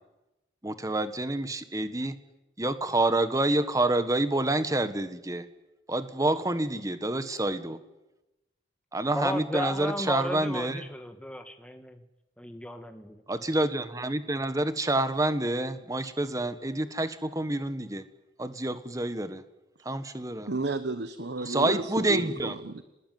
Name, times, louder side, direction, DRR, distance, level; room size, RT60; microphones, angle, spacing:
voice 1, 0.6-2.2 2.6-5.4 5.9-7.8 8.9-10.8 13.3-18.0 18.4-19.4 19.8-20.5 21.5-22.5, right 2 dB, 20° right, 11 dB, 1.4 m, -28 dB
voice 2, 9.1-12.0 12.4-13.2, left 1 dB, 5° left, 6 dB, 1.5 m, -34 dB
voice 3, 20.5-22.8, right 2 dB, 70° right, 11 dB, 1.1 m, -32 dB
24.5 x 20.0 x 9.3 m, 1.0 s
head